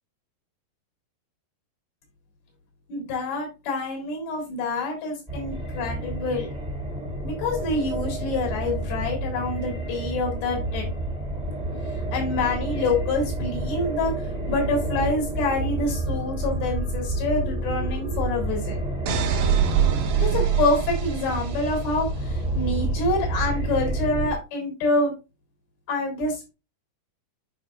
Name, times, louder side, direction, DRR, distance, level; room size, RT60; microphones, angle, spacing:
voice 1, 2.9-6.5 7.2-10.9 12.1-14.1 14.5-18.8 20.2-25.1 25.9-26.5, left 2 dB, 75° left, 1 dB, 5.5 m, -27 dB
sound 1, 5.3-24.3, right 1 dB, 20° right, 1.2 m, -29 dB
sound 2, 19.1-21.9, right 8 dB, 75° right, 3.2 m, -24 dB
11.0 x 6.0 x 2.5 m, 0.28 s
omnidirectional pair, 4.3 m